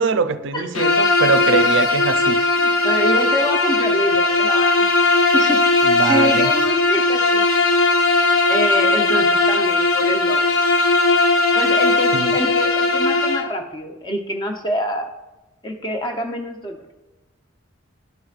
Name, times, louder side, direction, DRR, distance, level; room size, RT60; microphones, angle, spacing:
voice 1, 0.0-2.4 5.8-6.5 12.1-12.3, right 5 dB, 60° right, 0.4 m, -22 dB
Bowed string instrument, 0.7-13.5, left 2 dB, 80° left, 0.7 m, -18 dB
voice 2, 2.6-4.9 5.3-5.7 5.9-7.4 8.5-10.5 11.5-15.1 15.6-16.8, equal, 20° left, 0.6 m, -26 dB
12.0 x 4.7 x 2.4 m
head